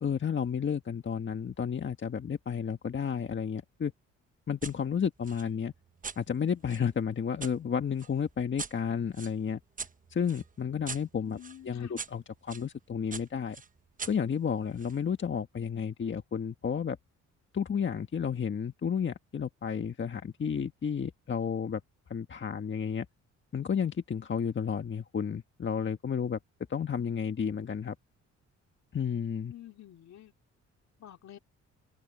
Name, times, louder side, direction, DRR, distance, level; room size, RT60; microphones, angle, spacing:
voice 1, 0.0-3.9 4.5-5.7 6.2-9.6 10.1-13.6 14.0-17.0 17.5-21.8 22.1-23.1 23.5-26.4 26.7-27.9 28.9-29.5, left 7 dB, 40° left, 1.6 m, -32 dB
sound 1, 4.6-4.8 5.2-7.5 8.0-12.7 13.1-15.0, right 5 dB, 25° right, 1.0 m, -44 dB
voice 2, 11.2-12.0 29.5-30.3 31.0-31.4, left 12 dB, 65° left, 3.3 m, -49 dB
cardioid pair, 90°, 30 cm